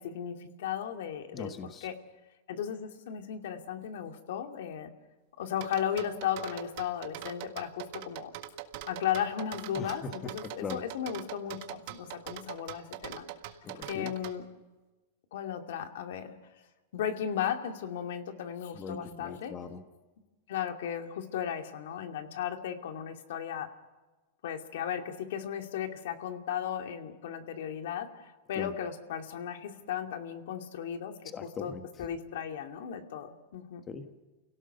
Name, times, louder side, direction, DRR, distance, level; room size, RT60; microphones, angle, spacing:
voice 1, 0.0-1.5 1.8-1.9 2.5-4.9 5.4-8.3 8.9-13.2 13.7-14.4 15.3-16.4 16.9-19.5 20.5-23.7 24.4-31.1 31.6-31.7 32.0-33.8, left 9 dB, 70° left, 5 dB, 2.5 m, -35 dB
voice 2, 1.3-1.9 9.8-10.8 13.6-14.1 18.7-19.8 28.6-28.7 31.2-31.8 33.9-34.2, left 5 dB, 20° left, 7 dB, 1.4 m, -40 dB
sound 1, 5.6-14.4, right 13 dB, 55° right, 1.7 m, -42 dB
29.5 x 17.5 x 6.8 m, 1.2 s
supercardioid pair, 150°, 0 cm